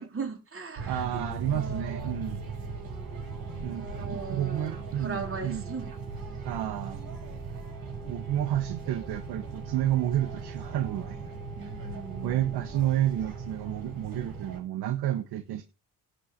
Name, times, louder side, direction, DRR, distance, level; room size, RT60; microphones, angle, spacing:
voice 1, 0.0-2.2 3.7-6.0 11.6-12.6, right 5 dB, 35° right, 3.9 m, -39 dB
sound 1, 0.8-14.6, right 4 dB, 70° right, 5.3 m, -38 dB
voice 2, 0.9-2.4 3.6-5.6 6.4-7.0 8.1-11.2 12.2-15.6, right 12 dB, 85° right, 1.2 m, -30 dB
11.0 x 5.4 x 8.5 m
cardioid pair, 80°, 38 cm